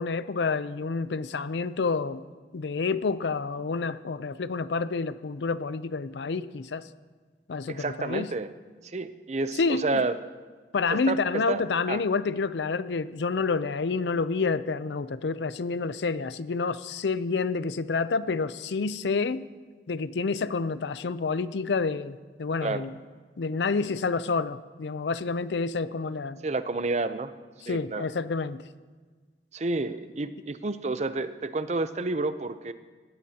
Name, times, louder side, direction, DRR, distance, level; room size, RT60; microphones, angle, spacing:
voice 1, 0.0-2.2 2.5-6.8 7.5-8.3 9.6-10.1 10.7-19.5 19.9-22.9 23.4-26.4 27.6-28.6, left 4 dB, 80° left, 15 dB, 0.5 m, -28 dB
voice 2, 7.7-8.5 8.8-10.2 11.1-11.2 11.5-11.6 11.9-12.0 22.6-22.8 26.4-27.3 27.7-28.0 29.5-32.7, right 3 dB, 40° right, 12 dB, 0.6 m, -30 dB
19.5 x 16.0 x 2.9 m, 1.4 s
head